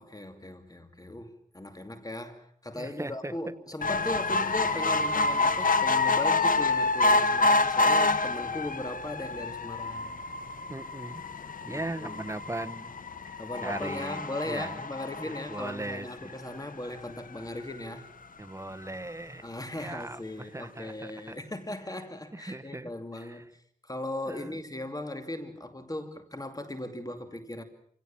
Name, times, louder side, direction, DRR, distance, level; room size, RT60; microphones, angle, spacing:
voice 1, 0.0-10.2 11.7-12.3 13.4-18.0 19.4-23.5 23.8-27.6, left 1 dB, 25° left, 2.5 m, -38 dB
voice 2, 2.7-3.5 10.7-11.2 11.6-12.9 13.3-14.8 15.2-16.3 18.4-19.5 19.7-21.4 22.3-22.9 23.2-23.4 24.3-24.6, right 2 dB, 20° right, 1.1 m, -39 dB
sound 1, 3.8-16.4 17.0-17.1 17.4-17.5 17.7-17.8, left 3 dB, 80° left, 1.2 m, -27 dB
27.5 x 17.5 x 7.3 m
wide cardioid pair, 55°, 14 cm